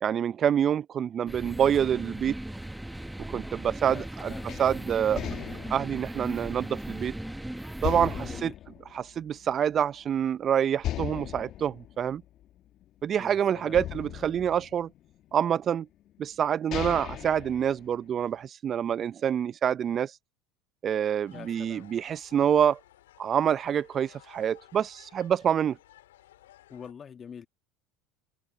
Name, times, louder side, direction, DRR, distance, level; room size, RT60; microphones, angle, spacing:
voice 1, 0.0-2.3 3.3-4.3 4.6-5.2 5.7-7.1 7.8-8.5 8.9-12.2 13.0-14.9 15.3-15.9 16.2-20.2 20.8-22.8 23.2-25.8, right 9 dB, 40° right, 0.6 m, -26 dB
sound 1, 1.3-8.4, right 1 dB, 5° right, 1.2 m, -38 dB
voice 2, 3.9-4.5 6.9-7.0 8.3-8.5 13.2-13.9 21.3-21.9 26.7-27.5, left 7 dB, 35° left, 1.9 m, -45 dB
sound 2, 4.5-7.3 7.8-9.8 10.1-10.2 10.8-13.2 13.7-15.3 16.1-16.2 16.5-18.3, left 13 dB, 50° left, 1.3 m, -38 dB
sound 3, 21.2-26.9, left 14 dB, 75° left, 3.3 m, -56 dB
hypercardioid pair, 75°, 0 cm